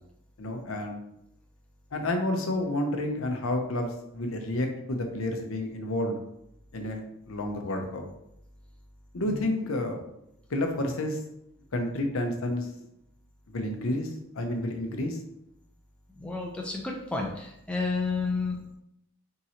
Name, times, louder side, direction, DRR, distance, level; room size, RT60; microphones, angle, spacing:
voice 1, 0.4-1.0 1.9-6.2 6.7-8.0 9.1-10.0 10.5-11.2 11.7-12.7 13.5-14.1 14.4-15.2, left 1 dB, 70° left, 4 dB, 0.7 m, -30 dB
voice 2, 16.2-18.6, left 3 dB, 5° left, -1 dB, 0.5 m, -31 dB
4.2 x 3.7 x 2.8 m, 0.80 s
head